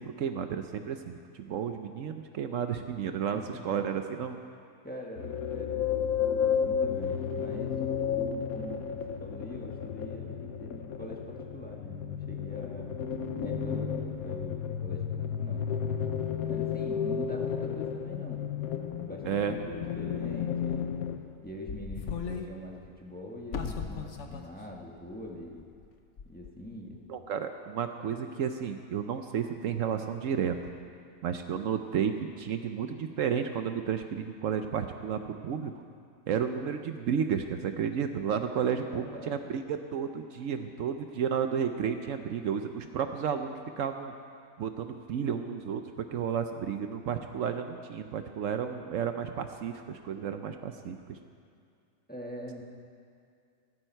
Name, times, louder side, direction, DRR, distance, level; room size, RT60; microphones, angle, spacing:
voice 1, 0.0-4.4 19.3-19.5 27.1-30.6 31.2-35.7 36.3-44.1 44.6-51.2, right 7 dB, 70° right, 7 dB, 1.0 m, -32 dB
voice 2, 3.3-3.6 4.8-12.9 13.4-15.7 16.5-21.0 21.4-25.6 26.2-27.0 38.9-39.5 52.1-52.6, left 1 dB, 5° left, -1 dB, 1.3 m, -44 dB
sound 1, 5.2-21.2, left 7 dB, 90° left, 1.3 m, -32 dB
sound 2, 20.7-20.8 21.5-22.5 22.8-22.9 23.5-24.4 24.7-24.8 25.6-25.9 26.2-26.5, left 5 dB, 60° left, 1.2 m, -36 dB
15.5 x 14.5 x 4.5 m, 2.4 s
omnidirectional pair, 1.5 m